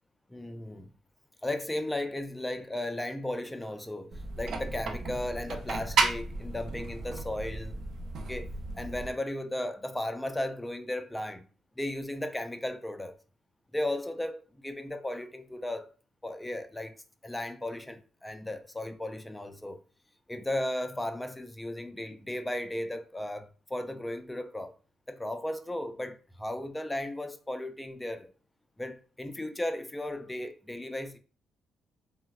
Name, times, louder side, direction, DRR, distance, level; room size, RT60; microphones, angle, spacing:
voice 1, 0.3-0.9 1.4-7.8 8.3-8.5 8.7-11.5 11.8-13.1 13.7-15.9 16.2-16.9 17.2-19.8 20.3-24.7 25.1-28.3 28.8-31.2, left 1 dB, 10° left, 0.3 m, -35 dB
sound 1, 4.1-9.1, right 4 dB, 60° right, 0.5 m, -33 dB
3.8 x 2.0 x 2.3 m
cardioid pair, 90°, 0 cm